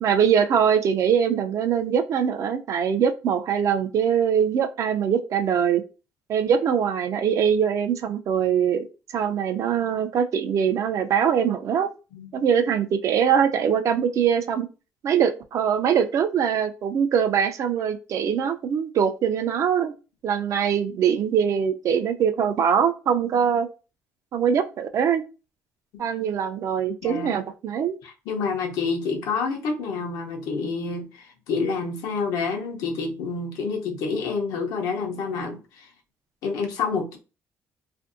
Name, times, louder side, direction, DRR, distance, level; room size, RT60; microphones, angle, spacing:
voice 1, 0.0-5.8 6.3-8.8 9.1-11.9 12.3-14.7 15.0-19.9 20.2-23.7 24.3-25.2 26.0-28.0, right 8 dB, 60° right, 0.4 m, -22 dB
voice 2, 27.0-27.4 28.0-35.9 36.4-37.2, left 4 dB, 85° left, 0.7 m, -28 dB
2.6 x 2.5 x 2.5 m
cardioid pair, 100°, 6 cm